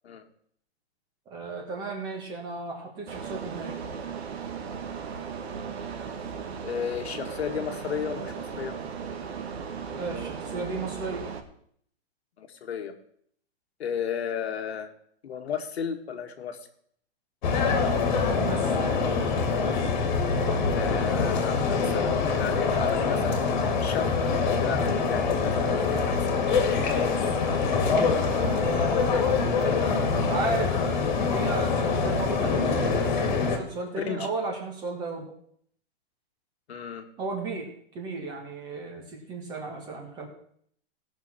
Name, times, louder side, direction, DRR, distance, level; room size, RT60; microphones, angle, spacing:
voice 1, 1.3-3.8 10.0-11.2 18.3-18.7 28.2-35.3 37.2-40.3, right 3 dB, 15° right, 1 dB, 1.4 m, -35 dB
sound 1, 3.1-11.4, right 6 dB, 85° right, 1.7 m, -36 dB
voice 2, 6.6-8.7 12.4-12.9 13.8-14.9 15.2-16.6 20.7-24.1 24.5-26.4 34.0-34.3 36.7-37.0, left 7 dB, 85° left, 5 dB, 1.9 m, -33 dB
sound 2, 17.4-33.6, left 4 dB, 45° left, 1.9 m, -25 dB
17.5 x 6.3 x 4.4 m, 0.64 s
hypercardioid pair, 180°, 31 cm